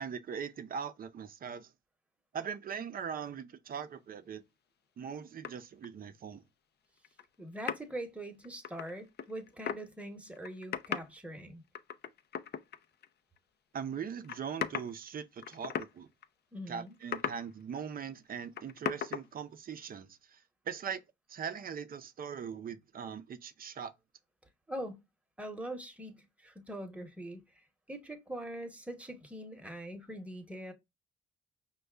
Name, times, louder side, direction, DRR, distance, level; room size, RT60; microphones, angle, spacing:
voice 1, 0.0-1.7 2.3-4.4 5.0-6.4 13.7-16.1 16.7-20.4 20.7-21.0 21.3-23.9, right 7 dB, 45° right, 0.6 m, -40 dB
sound 1, 5.4-5.9 7.0-7.2 7.7-7.8 8.4-9.9 10.3-11.1 11.7-13.1 13.4-13.5 14.2-15.0 15.4-15.9 16.2-16.3 17.0-17.5 18.3-18.4 18.6-19.3, left 9 dB, 55° left, 0.5 m, -37 dB
voice 2, 7.4-11.6 16.5-16.9 24.7-25.0 25.4-27.4 27.9-30.7, right 1 dB, 5° right, 1.0 m, -42 dB
5.2 x 2.3 x 3.3 m
cardioid pair, 90°, 20 cm